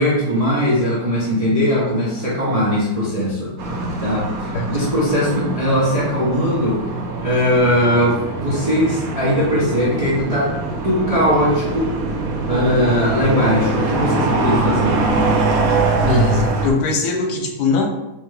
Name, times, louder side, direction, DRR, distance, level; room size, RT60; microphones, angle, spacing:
voice 1, 0.0-3.5 4.0-4.2 4.7-6.8 7.2-10.5 10.8-11.9 12.5-15.0, equal, 45° right, -7 dB, 0.4 m, -19 dB
sound 1, 3.6-16.7, right 3 dB, 65° right, 1.1 m, -23 dB
voice 2, 16.0-17.9, left 3 dB, 80° left, 2 dB, 1.2 m, -20 dB
4.6 x 2.3 x 3.1 m, 0.96 s
omnidirectional pair, 1.8 m